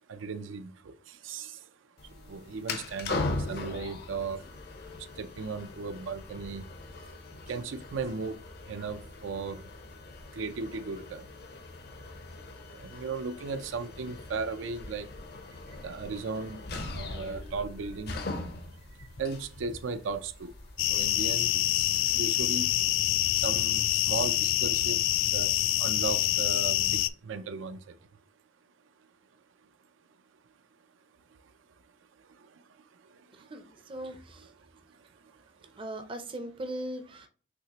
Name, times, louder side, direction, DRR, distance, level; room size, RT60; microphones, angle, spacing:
voice 1, 0.1-4.5 5.0-7.1 7.4-9.7 10.3-11.4 12.7-15.1 15.5-18.3 18.9-20.6 20.9-22.7 23.2-28.0 31.3-31.6 32.2-35.8, right 4 dB, 80° right, 0.4 m, -37 dB
sound 1, 2.0-21.8, left 2 dB, 55° left, 0.7 m, -40 dB
sound 2, 20.8-27.1, left 14 dB, 85° left, 0.3 m, -26 dB
voice 2, 33.9-34.5 35.8-37.3, right 1 dB, 25° right, 0.5 m, -38 dB
6.1 x 2.9 x 2.9 m
head